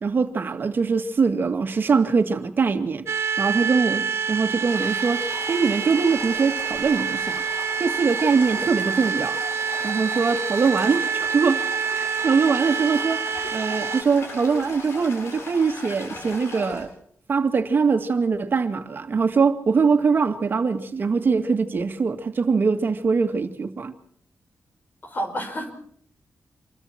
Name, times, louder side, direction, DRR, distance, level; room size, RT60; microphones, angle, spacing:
voice 1, 0.0-3.1 3.4-7.4 7.8-9.4 9.8-11.6 11.9-13.2 13.5-16.9 17.3-23.9, right 5 dB, 50° right, 2.1 m, -22 dB
sound 1, 3.1-14.0, right 6 dB, 75° right, 1.7 m, -27 dB
Toilet flush, 4.7-16.8, left 2 dB, 80° left, 7.7 m, -37 dB
voice 2, 25.0-25.7, equal, 45° left, 5.4 m, -31 dB
27.0 x 22.5 x 4.4 m
wide cardioid pair, 105°, 4 cm